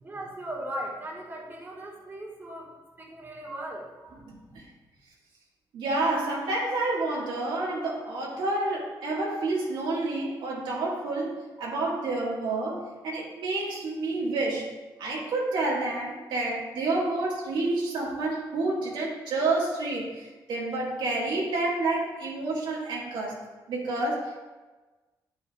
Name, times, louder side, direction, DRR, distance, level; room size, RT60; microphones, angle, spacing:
voice 1, 0.0-2.7 3.0-3.9, right 1 dB, 25° right, -2 dB, 1.6 m, -38 dB
voice 2, 4.3-4.7 5.7-23.4 23.7-24.4, right 2 dB, 80° right, -4 dB, 1.8 m, -29 dB
9.2 x 5.6 x 2.4 m, 1.2 s
cardioid pair, 75°, 8 cm